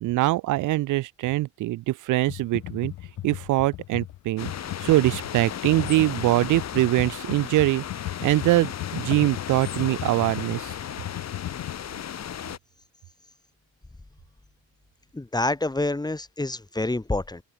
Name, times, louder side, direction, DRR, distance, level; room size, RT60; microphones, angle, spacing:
voice 1, 0.0-2.9 3.2-4.5 4.8-7.8 8.2-10.7, right 17 dB, 85° right, 0.9 m, -23 dB
Computer keyboard, 2.2-11.7, left 14 dB, 80° left, 1.7 m, -37 dB
sound 1, 4.4-12.6, left 9 dB, 60° left, 3.7 m, -35 dB
voice 2, 15.1-17.4, left 2 dB, 15° left, 3.2 m, -27 dB
open air
cardioid pair, 90°, 30 cm